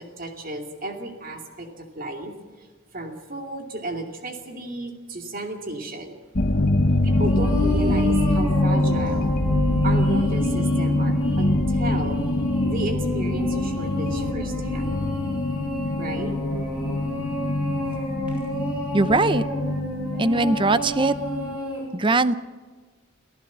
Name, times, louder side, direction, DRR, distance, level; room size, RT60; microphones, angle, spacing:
voice 1, 0.0-2.3 2.6-2.7 2.9-6.2 7.0-9.3 9.8-12.2 12.6-14.9 16.0-16.3, right 2 dB, 45° right, 3 dB, 2.5 m, -33 dB
sound 1, 6.4-21.6, left 1 dB, 45° left, 1.1 m, -24 dB
sound 2, 7.1-21.8, left 1 dB, 5° right, 8.0 m, -31 dB
voice 2, 18.9-19.4 20.1-21.1 21.9-22.3, right 2 dB, 25° right, 14 dB, 0.6 m, -20 dB
24.5 x 15.0 x 7.3 m, 1.4 s
head